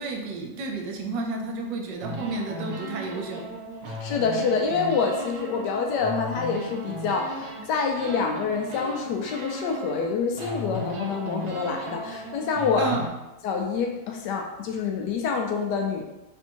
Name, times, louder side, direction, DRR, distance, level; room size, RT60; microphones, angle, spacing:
voice 1, 0.0-3.5 12.8-13.1, right 3 dB, 80° right, 2 dB, 1.3 m, -31 dB
sound 1, 2.0-7.7 8.0-10.1 10.4-13.1, equal, 65° right, 1.0 m, -36 dB
voice 2, 3.9-13.0 13.4-16.0, left 5 dB, 75° left, 2 dB, 1.1 m, -27 dB
3.3 x 2.7 x 4.4 m, 0.99 s
omnidirectional pair, 2.0 m